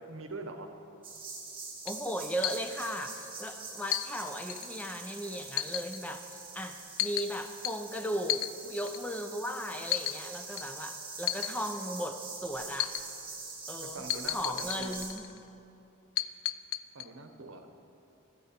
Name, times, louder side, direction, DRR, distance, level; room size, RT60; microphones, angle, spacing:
voice 1, 0.1-0.7 13.8-14.9 16.9-17.7, right 3 dB, 75° right, 6 dB, 0.9 m, -43 dB
sound 1, 1.0-15.1, right 4 dB, 25° right, 1.6 m, -44 dB
voice 2, 1.8-12.9 13.7-15.2, equal, 5° left, 6 dB, 0.4 m, -37 dB
sound 2, 1.9-2.0 2.4-2.6 3.9-4.1 4.5-4.7 5.6-6.0 7.0-7.3 7.6-7.7 8.3-8.5 8.9-9.0 9.9-10.2 10.6-10.7 11.3-11.5 12.8-13.0 14.1-15.4 16.2-17.0, left 14 dB, 80° left, 0.3 m, -32 dB
14.0 x 8.9 x 4.3 m, 2.8 s
head